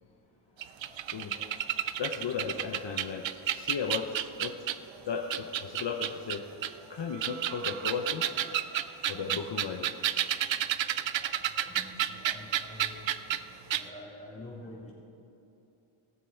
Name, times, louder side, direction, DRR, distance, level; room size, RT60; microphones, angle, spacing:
sound 1, 0.6-4.9 5.3-6.7 7.1-13.4 13.7-13.8, right 11 dB, 65° right, 0.5 m, -31 dB
voice 1, 0.8-1.5 2.0-4.1 4.4-4.5 5.1-6.4 6.9-8.6 9.1-9.9 11.2-11.6, left 6 dB, 60° left, 3 dB, 0.8 m, -36 dB
voice 2, 11.7-13.0 13.7-14.9, left 1 dB, 15° left, -6 dB, 3.3 m, -46 dB
18.0 x 7.6 x 4.5 m, 2.8 s
wide cardioid pair, 110°, 50 cm